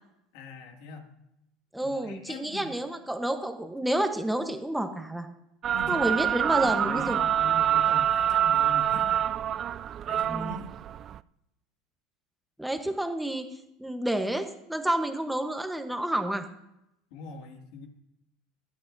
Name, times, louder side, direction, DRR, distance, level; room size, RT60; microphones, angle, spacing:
voice 1, 0.3-1.1 1.8-2.8 5.7-9.3 10.0-10.6 17.1-17.9, left 2 dB, 70° left, 2 dB, 2.3 m, -41 dB
voice 2, 1.7-5.3 5.9-7.2 10.3-10.6 12.6-13.4 13.8-16.5, right 1 dB, 5° right, 6 dB, 1.0 m, -29 dB
sound 1, 5.6-11.2, right 10 dB, 40° right, 0.3 m, -26 dB
25.0 x 8.6 x 2.7 m, 0.85 s
supercardioid pair, 115°, 0 cm